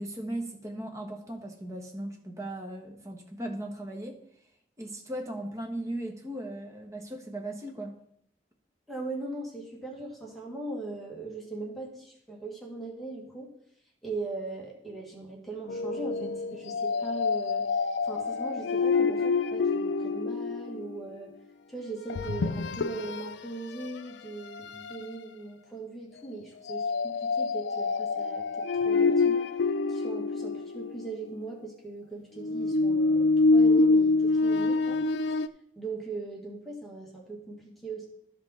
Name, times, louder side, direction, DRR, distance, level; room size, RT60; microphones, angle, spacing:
voice 1, 0.0-4.2 4.8-7.9, right 1 dB, 15° right, 3 dB, 1.2 m, -37 dB
voice 2, 8.9-13.5 14.0-17.6 18.0-21.3 21.7-29.4 29.9-35.0 35.3-35.4 35.8-38.1, right 3 dB, ahead, -2 dB, 1.7 m, -39 dB
sound 1, 15.7-21.0 22.1-23.3 23.8-24.0 24.5-25.1 26.7-31.1 32.4-35.5, left 3 dB, 85° left, 0.4 m, -26 dB
13.0 x 5.3 x 4.2 m, 0.69 s
head